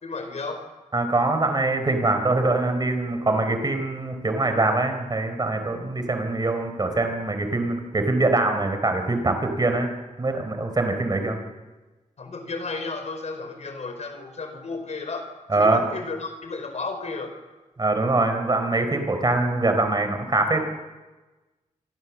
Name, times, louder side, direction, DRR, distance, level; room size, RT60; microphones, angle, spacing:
voice 1, 0.0-0.6 12.2-17.3, left 3 dB, 55° left, 7 dB, 4.6 m, -33 dB
voice 2, 0.9-9.9 10.2-11.4 15.5-15.8 17.8-20.6, right 2 dB, 30° right, 6 dB, 4.0 m, -23 dB
26.5 x 25.5 x 7.3 m, 1.2 s
wide cardioid pair, 155°, 14 cm